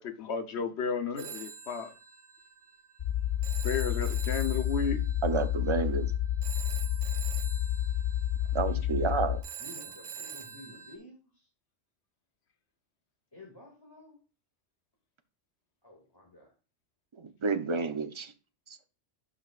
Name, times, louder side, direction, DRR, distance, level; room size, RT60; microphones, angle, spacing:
voice 1, 0.0-1.9 3.6-5.0, left 5 dB, 65° left, 1.2 m, -33 dB
Telephone, 1.2-11.0, right 7 dB, 70° right, 1.2 m, -45 dB
sound 1, 3.0-9.4, left 11 dB, 45° left, 0.7 m, -30 dB
voice 2, 5.2-6.1 8.5-9.4 17.1-18.3 18.7-18.8, right 4 dB, 30° right, 0.6 m, -30 dB
voice 3, 8.6-9.3 9.6-11.5 13.3-14.2 15.8-16.5, left 1 dB, 20° left, 2.3 m, -51 dB
11.0 x 5.8 x 2.5 m
omnidirectional pair, 1.3 m